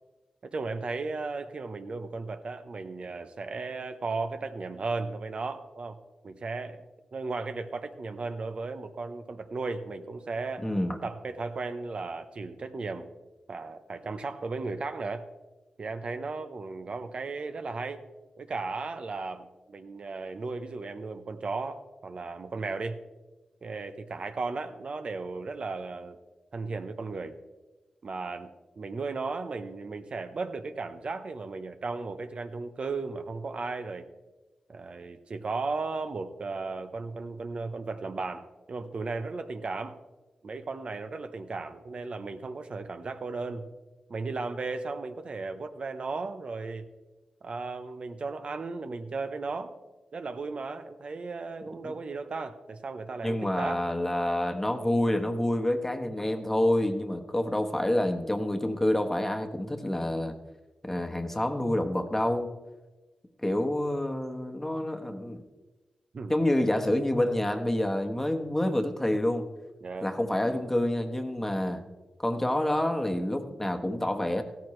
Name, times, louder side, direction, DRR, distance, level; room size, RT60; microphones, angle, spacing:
voice 1, 0.4-6.0 6.2-6.8 7.1-10.7 11.0-13.1 13.5-15.3 15.8-18.0 18.4-23.0 23.6-26.2 26.5-27.4 28.0-28.5 28.8-34.0 34.7-40.0 40.4-43.7 44.1-46.9 47.4-49.7 50.1-53.8 66.1-66.3 69.8-70.1, right 3 dB, 55° right, 8 dB, 0.8 m, -35 dB
voice 2, 10.6-11.0 51.8-51.9 53.2-60.3 60.8-62.5 63.4-65.4 66.3-69.5 70.0-71.8 72.2-74.4, left 1 dB, 15° left, 5 dB, 1.2 m, -28 dB
15.5 x 13.5 x 3.2 m, 1.2 s
wide cardioid pair, 85°, 2 cm